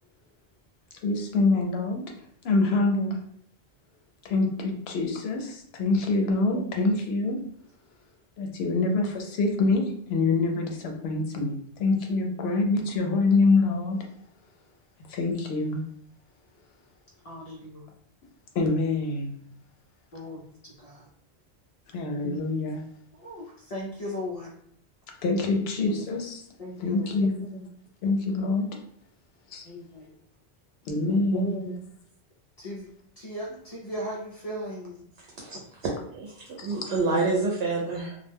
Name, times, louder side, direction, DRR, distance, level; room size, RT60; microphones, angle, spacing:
voice 1, 1.0-2.0 2.4-3.2 4.2-7.4 8.4-14.0 15.1-15.8 18.5-19.3 21.9-22.8 25.2-26.4 26.8-27.4 28.0-28.7 29.5-29.6 30.9-31.5 36.6-36.7, left 3 dB, 70° left, 2 dB, 0.8 m, -25 dB
voice 2, 17.2-17.9 20.1-21.1 22.2-22.4 23.1-24.5 25.8-26.1 26.6-27.3 27.6-27.7 29.6-30.1 31.3-31.7 32.6-32.9 33.2-35.0 35.5-35.7, left 1 dB, 45° left, -4 dB, 0.5 m, -36 dB
voice 3, 36.1-38.2, right 3 dB, 80° right, -2 dB, 0.9 m, -27 dB
2.3 x 2.1 x 3.3 m, 0.66 s
omnidirectional pair, 1.1 m